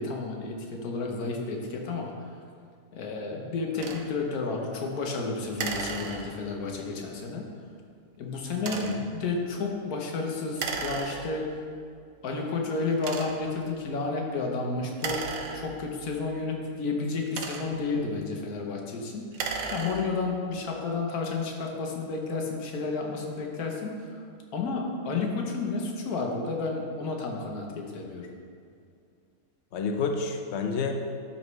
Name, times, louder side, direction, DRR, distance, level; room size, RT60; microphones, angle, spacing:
voice 1, 0.0-2.1 2.9-7.5 8.2-11.6 12.2-15.2 15.5-24.2 24.5-28.3, left 3 dB, 85° left, 0 dB, 1.4 m, -31 dB
sound 1, 3.8-4.1 5.6-6.6 8.6-9.1 10.6-11.6 12.2-12.3 13.0-13.6 14.9-16.1 17.0-17.9 19.2-20.3, right 5 dB, 70° right, 1.1 m, -35 dB
voice 2, 8.7-9.0 29.7-30.9, left 5 dB, 55° left, 4 dB, 0.9 m, -29 dB
12.5 x 4.2 x 3.2 m, 2.3 s
omnidirectional pair, 1.5 m